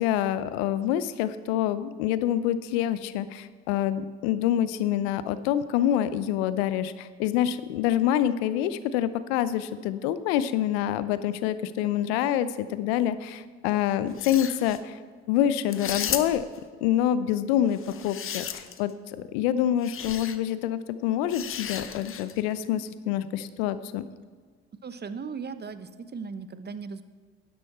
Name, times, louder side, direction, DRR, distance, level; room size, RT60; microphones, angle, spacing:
voice 1, 0.0-15.0 15.3-16.5 16.8-24.1, left 11 dB, 80° left, 14 dB, 0.6 m, -26 dB
sound 1, 14.1-14.8 15.7-16.6 17.7-18.9 19.8-20.4 21.3-22.4, left 8 dB, 45° left, 0.9 m, -34 dB
voice 2, 24.8-27.0, right 5 dB, 30° right, 11 dB, 0.9 m, -37 dB
12.5 x 10.5 x 4.3 m, 1.6 s
hypercardioid pair, 50°, 31 cm